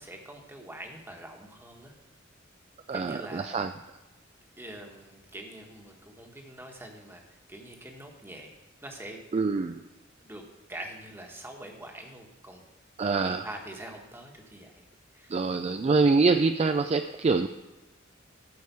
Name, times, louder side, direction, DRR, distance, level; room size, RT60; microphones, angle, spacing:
voice 1, 0.0-1.9 2.9-3.6 4.6-7.2 7.5-8.5 8.8-9.2 10.2-10.4 10.7-12.6 13.0-14.8 15.1-15.4, right 1 dB, 10° right, 2 dB, 1.3 m, -44 dB
voice 2, 2.9-3.7 9.3-9.8 13.0-13.5 15.3-17.5, right 4 dB, 30° right, 8 dB, 0.3 m, -25 dB
13.0 x 4.9 x 6.8 m, 1.1 s
head